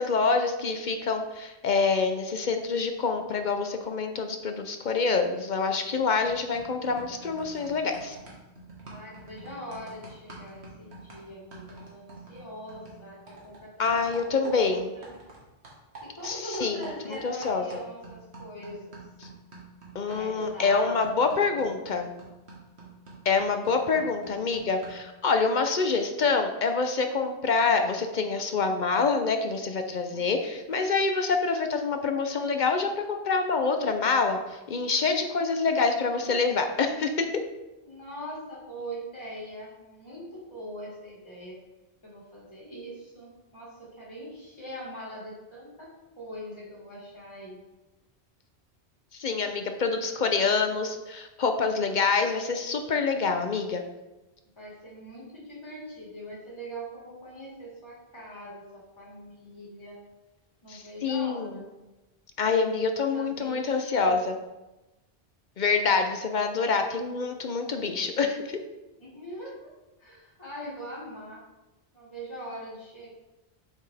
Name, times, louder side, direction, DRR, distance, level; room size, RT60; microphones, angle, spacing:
voice 1, 0.0-8.2 13.8-14.9 16.2-17.6 19.9-22.1 23.3-37.4 49.1-53.8 60.7-61.5 62.4-64.4 65.6-68.6, left 4 dB, 55° left, 6 dB, 0.7 m, -26 dB
sound 1, 5.7-6.0 6.2-15.4 15.6-25.1, right 2 dB, 85° right, 1.9 m, -48 dB
voice 2, 8.9-13.8 14.2-15.2 16.0-19.0 20.1-21.1 23.9-24.3 30.1-30.2 35.2-36.2 37.8-41.5 42.0-47.6 54.6-60.0 60.6-61.7 63.1-64.2 69.0-69.7 70.0-71.4 71.9-73.1, equal, 25° left, -7 dB, 2.2 m, -42 dB
7.4 x 5.6 x 3.4 m, 1.0 s
omnidirectional pair, 1.1 m